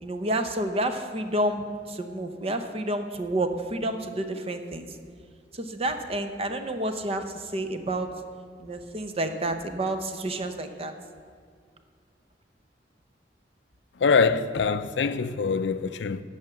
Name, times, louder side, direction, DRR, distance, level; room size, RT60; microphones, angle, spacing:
voice 1, 0.0-4.9 5.5-8.1 8.6-10.9, right 1 dB, 35° right, 0.8 m, -29 dB
voice 2, 14.0-16.2, left 5 dB, 75° left, 0.4 m, -24 dB
11.0 x 5.8 x 7.8 m
head